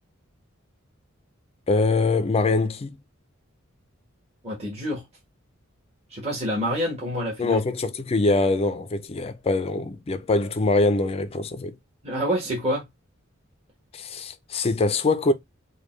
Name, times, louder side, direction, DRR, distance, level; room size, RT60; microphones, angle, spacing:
voice 1, 1.7-3.0 7.4-11.8 13.9-15.3, left 3 dB, 30° left, 0.4 m, -23 dB
voice 2, 4.4-5.0 6.1-7.6 12.0-12.8, equal, 30° right, 1.2 m, -27 dB
5.0 x 2.2 x 3.1 m
head